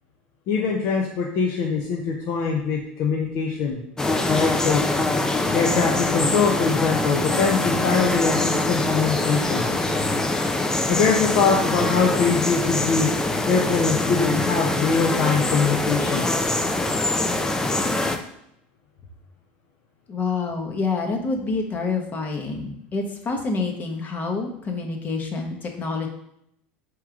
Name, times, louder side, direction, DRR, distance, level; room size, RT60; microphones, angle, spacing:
voice 1, 0.5-3.8 4.3-4.8 5.5-9.7 10.9-13.1 13.4-16.3, left 5 dB, 60° left, -1 dB, 0.7 m, -23 dB
sound 1, 4.0-18.2, left 2 dB, 10° left, 0.5 m, -23 dB
voice 2, 20.1-26.1, left 4 dB, 35° left, 3 dB, 1.0 m, -27 dB
4.6 x 3.1 x 3.6 m, 0.75 s
supercardioid pair, 100°, 5 cm